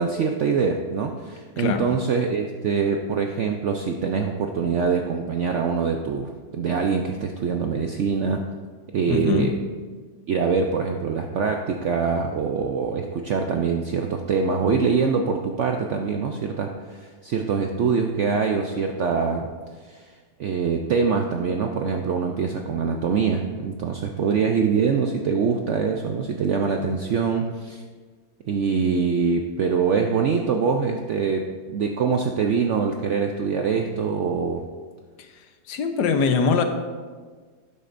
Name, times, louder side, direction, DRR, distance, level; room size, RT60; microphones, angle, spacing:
voice 1, 0.0-8.4 8.9-9.5 10.3-19.5 19.9-20.1 20.4-27.8 28.5-34.6, right 5 dB, 70° right, 3 dB, 0.7 m, -24 dB
voice 2, 1.6-1.9 9.1-9.5 35.2-35.3 35.7-36.6, left 5 dB, 75° left, 7 dB, 1.3 m, -22 dB
12.0 x 9.1 x 2.6 m, 1.5 s
omnidirectional pair, 1.8 m